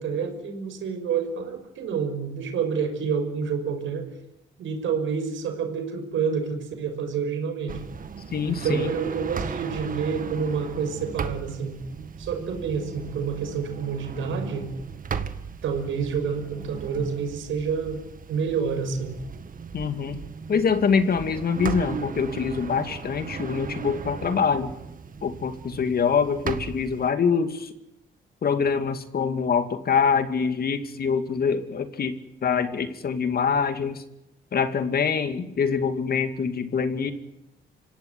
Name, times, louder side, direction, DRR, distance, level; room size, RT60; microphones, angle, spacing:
voice 1, 0.0-4.1 4.6-7.8 8.4-11.8 12.2-14.7 15.6-19.2, right 6 dB, 75° right, 6 dB, 6.0 m, -28 dB
sound 1, 7.7-27.1, right 6 dB, 45° right, 1.7 m, -36 dB
voice 2, 8.3-8.9 19.7-20.2 20.5-24.7 25.2-27.7 28.4-32.2 32.4-34.0 34.5-37.1, left 6 dB, 50° left, 9 dB, 2.5 m, -24 dB
26.5 x 17.0 x 9.9 m, 0.87 s
cardioid pair, 90°, 20 cm